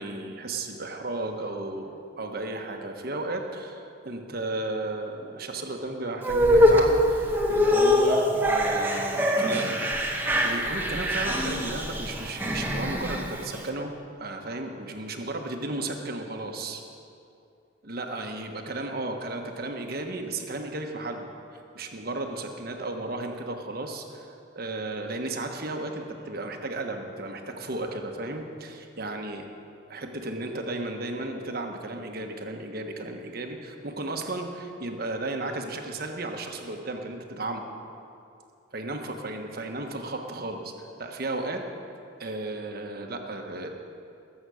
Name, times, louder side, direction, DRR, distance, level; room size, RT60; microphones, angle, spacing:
voice 1, 0.0-16.8 17.8-29.5 29.9-37.6 38.7-41.7 42.2-43.7, right 2 dB, 50° right, 4 dB, 1.3 m, -34 dB
sound 1, 6.2-13.6, left 1 dB, 10° right, 1.1 m, -23 dB
20.5 x 8.0 x 6.3 m, 2.6 s
head